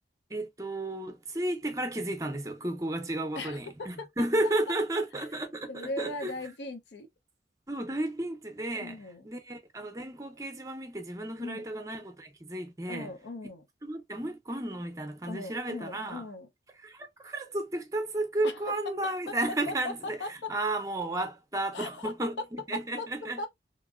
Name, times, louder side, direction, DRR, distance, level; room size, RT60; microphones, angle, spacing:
voice 1, 0.3-6.3 7.7-9.0 9.2-13.1 13.8-16.2 16.8-23.4, right 1 dB, 20° right, 0.5 m, -33 dB
voice 2, 3.4-4.1 5.7-7.1 8.7-9.3 11.4-11.6 12.9-13.6 15.3-16.5 18.4-19.4 19.7-20.5 21.7-22.4 22.7-23.1 23.4-23.5, left 2 dB, 90° left, 0.6 m, -38 dB
3.0 x 2.6 x 2.3 m
head